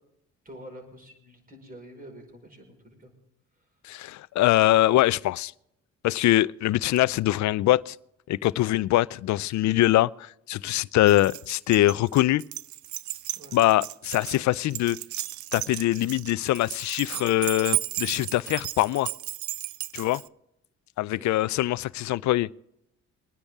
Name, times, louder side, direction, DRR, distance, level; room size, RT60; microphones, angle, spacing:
voice 1, 0.4-3.1 13.3-13.6 14.2-14.4 21.2-21.3, equal, 30° right, 5.0 m, -47 dB
voice 2, 3.8-5.5 6.0-8.0 8.3-12.4 13.5-15.0 15.5-19.1 19.9-20.2 21.0-22.5, left 15 dB, 70° left, 0.5 m, -23 dB
Keys jangling, 11.1-20.3, right 16 dB, 75° right, 0.5 m, -34 dB
23.5 x 10.0 x 3.6 m
cardioid pair, 90°, 30 cm